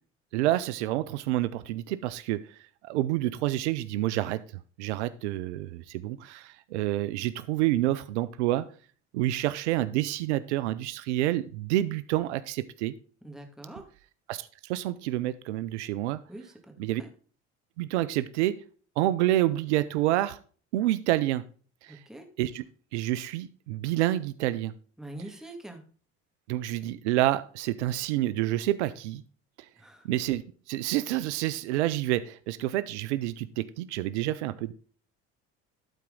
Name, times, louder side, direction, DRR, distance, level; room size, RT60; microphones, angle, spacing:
voice 1, 0.3-2.4 2.8-4.4 4.8-8.6 9.1-12.9 14.3-16.2 16.8-17.0 17.8-18.6 19.0-20.4 20.7-21.4 21.8-22.0 22.4-22.6 22.9-24.7 26.5-29.2 30.0-30.4 30.7-34.7, right 15 dB, 90° right, 14 dB, 0.5 m, -28 dB
voice 2, 13.2-13.9 16.3-16.7 17.0-17.1 21.9-22.3 25.0-25.8 29.8-30.1, right 1 dB, ahead, 3 dB, 2.0 m, -44 dB
12.5 x 4.3 x 3.8 m, 0.40 s
hypercardioid pair, 75°, 33 cm